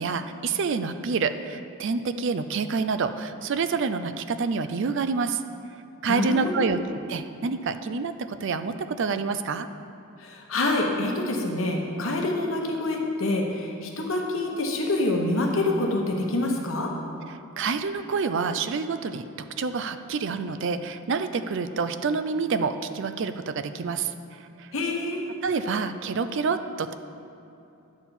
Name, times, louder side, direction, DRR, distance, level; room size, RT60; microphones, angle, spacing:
voice 1, 0.0-5.4 6.0-6.8 7.1-9.7 17.6-19.2 19.6-24.1 24.6-24.7 25.4-26.9, right 5 dB, 55° right, 10 dB, 0.4 m, -27 dB
voice 2, 6.1-6.7 10.2-16.9 24.7-25.2, left 2 dB, 65° left, 1 dB, 1.2 m, -26 dB
10.5 x 4.3 x 7.0 m, 2.8 s
head